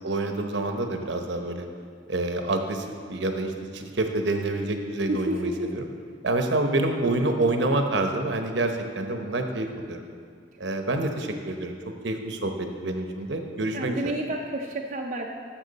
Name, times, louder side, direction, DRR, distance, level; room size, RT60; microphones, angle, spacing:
voice 1, 0.0-1.7 2.1-5.9 6.2-10.0 10.6-14.2, right 2 dB, 65° right, 5 dB, 0.9 m, -27 dB
voice 2, 5.1-5.7 13.7-15.3, right 1 dB, 40° right, 0 dB, 0.5 m, -30 dB
12.0 x 7.2 x 4.1 m, 2.3 s
head